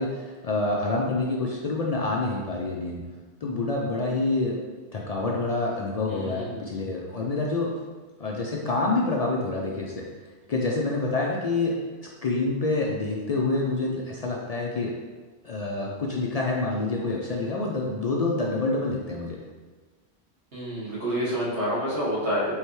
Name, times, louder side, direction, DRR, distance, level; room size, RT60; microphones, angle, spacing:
voice 1, 0.0-3.0 3.4-4.6 4.9-7.7 8.2-10.1 10.5-15.0 15.4-19.4, left 3 dB, 55° left, -2 dB, 0.4 m, -27 dB
voice 2, 6.1-6.7 20.5-22.6, equal, 80° right, -8 dB, 1.7 m, -28 dB
4.7 x 3.2 x 3.1 m, 1.4 s
omnidirectional pair, 1.1 m